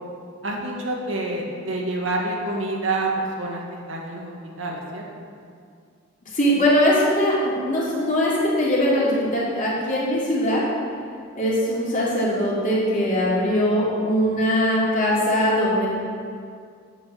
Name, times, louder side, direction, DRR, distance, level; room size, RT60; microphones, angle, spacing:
voice 1, 0.4-3.6 3.9-5.3, right 2 dB, 85° right, -1 dB, 1.9 m, -27 dB
voice 2, 6.3-10.6 11.3-15.9, equal, 40° left, -6 dB, 3.0 m, -21 dB
9.1 x 8.8 x 6.3 m, 2.2 s
head